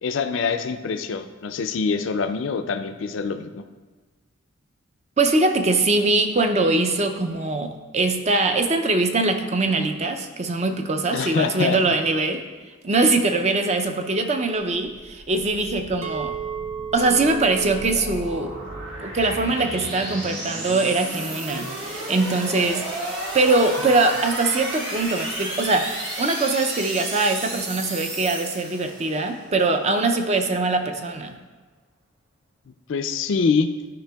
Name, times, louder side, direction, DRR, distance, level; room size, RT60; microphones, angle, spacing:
voice 1, 0.0-3.6 11.1-11.8 32.9-33.7, left 5 dB, 60° left, 9 dB, 0.4 m, -24 dB
voice 2, 5.2-12.4 12.8-16.4 16.9-18.5 19.0-31.4, right 3 dB, 30° right, 6 dB, 0.4 m, -22 dB
sound 1, 14.8-29.3, right 1 dB, 60° right, 1.6 m, -33 dB
Chink clink, 16.0-21.2, right 8 dB, 75° right, 0.6 m, -36 dB
11.5 x 5.0 x 2.3 m, 1.3 s
head